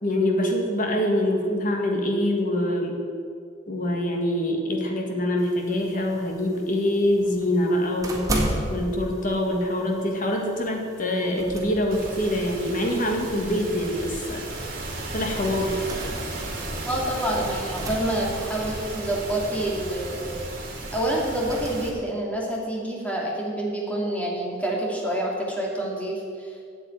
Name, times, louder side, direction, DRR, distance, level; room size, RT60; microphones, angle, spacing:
voice 1, 0.0-3.0 3.7-8.3 8.7-14.4 15.1-15.9, left 1 dB, 45° left, 1 dB, 1.8 m, -25 dB
sound 1, 5.4-21.9, right 1 dB, 20° right, 1.8 m, -37 dB
sound 2, 11.9-21.9, right 2 dB, 50° right, 2.5 m, -34 dB
voice 2, 16.9-20.3 20.9-26.5, right 1 dB, 10° left, -2 dB, 2.4 m, -27 dB
8.3 x 8.1 x 9.1 m, 2.3 s
head